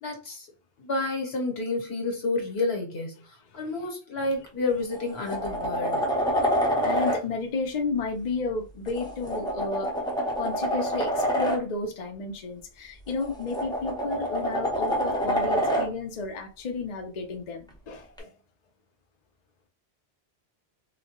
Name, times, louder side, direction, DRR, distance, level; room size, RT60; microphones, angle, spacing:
voice 1, 0.0-0.5 0.8-6.1, left 2 dB, 70° left, 1.3 m, -30 dB
sound 1, 4.3-4.5 4.9-7.2 8.8-11.6 13.1-15.9 18.2-18.3, equal, 5° left, 0.6 m, -27 dB
voice 2, 6.8-9.9 10.4-18.3, left 3 dB, 45° left, 0.6 m, -32 dB
3.9 x 2.2 x 2.9 m
omnidirectional pair, 1.1 m